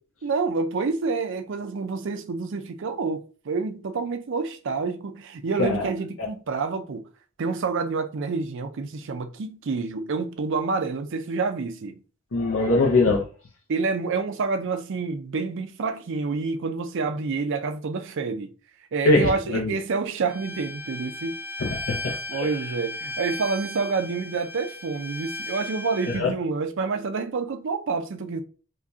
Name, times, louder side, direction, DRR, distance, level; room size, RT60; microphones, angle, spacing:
voice 1, 0.2-7.1 7.4-12.0 13.7-18.5 18.9-21.4 22.3-28.4, right 4 dB, 65° right, 0.5 m, -28 dB
voice 2, 12.3-13.3 19.0-19.7 21.6-22.5 26.1-26.3, left 2 dB, 70° left, 0.7 m, -22 dB
Bowed string instrument, 20.3-26.2, left 2 dB, 10° right, 0.4 m, -36 dB
4.8 x 2.3 x 2.7 m
head